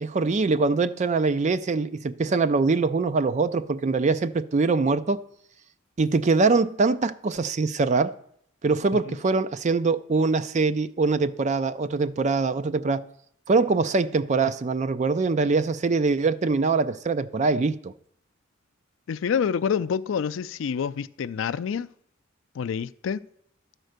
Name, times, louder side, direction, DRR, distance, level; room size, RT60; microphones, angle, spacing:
voice 1, 0.0-5.2 6.0-8.1 8.6-13.0 13.5-17.9, right 4 dB, 35° right, 0.4 m, -23 dB
voice 2, 19.1-21.9 22.6-23.2, left 7 dB, 65° left, 0.3 m, -27 dB
12.5 x 4.5 x 6.5 m
head